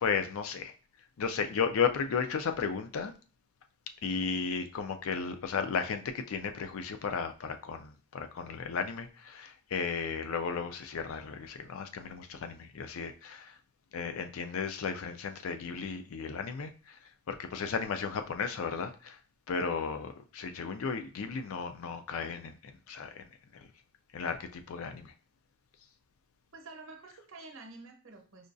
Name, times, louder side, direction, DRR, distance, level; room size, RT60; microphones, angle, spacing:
voice 1, 0.0-0.7 1.2-3.1 4.0-13.5 13.9-17.0 17.3-19.2 19.5-23.3 23.5-23.7 24.1-25.1, left 5 dB, 65° left, 7 dB, 0.4 m, -34 dB
voice 2, 26.5-28.5, right 3 dB, 60° right, 3 dB, 0.8 m, -49 dB
4.9 x 2.3 x 2.5 m, 0.36 s
head